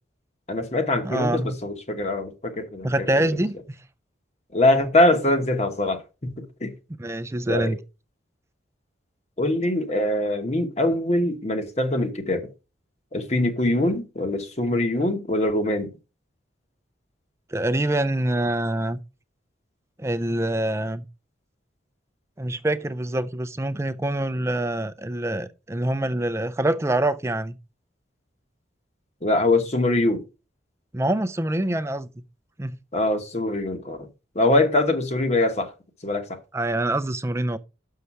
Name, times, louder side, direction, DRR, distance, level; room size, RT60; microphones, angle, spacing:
voice 1, 0.5-3.3 4.5-6.0 6.3-6.7 7.5-7.8 9.4-12.5 13.1-15.9 29.2-30.2 32.9-34.0 34.3-35.7 36.0-36.4, left 1 dB, 35° left, 1.1 m, -23 dB
voice 2, 1.0-1.6 2.8-3.8 7.0-7.8 17.5-19.0 20.0-21.0 22.4-27.5 30.9-32.1 32.6-32.8 36.5-37.6, right 1 dB, 15° right, 0.4 m, -25 dB
6.7 x 5.7 x 4.6 m
head